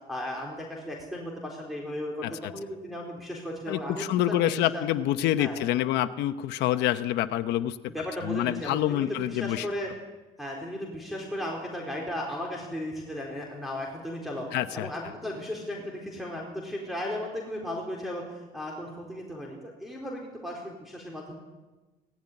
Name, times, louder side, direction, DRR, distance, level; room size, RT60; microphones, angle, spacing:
voice 1, 0.1-2.2 2.5-4.8 5.4-5.6 7.9-9.9 10.4-14.5 14.7-21.3, left 1 dB, ahead, -1 dB, 4.1 m, -35 dB
voice 2, 3.7-7.8 8.2-9.7 14.5-14.9, left 13 dB, 85° left, 10 dB, 0.9 m, -27 dB
18.0 x 14.5 x 9.9 m, 1.2 s
cardioid pair, 110°, 17 cm